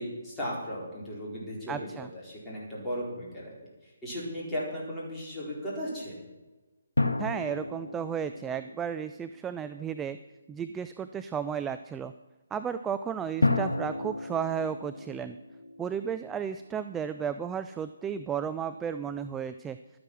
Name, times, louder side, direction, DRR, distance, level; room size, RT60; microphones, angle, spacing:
voice 1, 0.0-3.5 3.8-6.1, equal, 10° left, -7 dB, 4.6 m, -36 dB
voice 2, 1.7-2.1 7.2-10.2 10.5-12.1 12.5-15.4 15.8-19.8, right 7 dB, 10° right, 10 dB, 0.3 m, -33 dB
sound 1, 7.0-9.8 13.4-16.8, left 2 dB, 75° left, 1.2 m, -32 dB
12.0 x 9.8 x 6.2 m, 1.2 s
figure-of-eight pair, 145°, 0 cm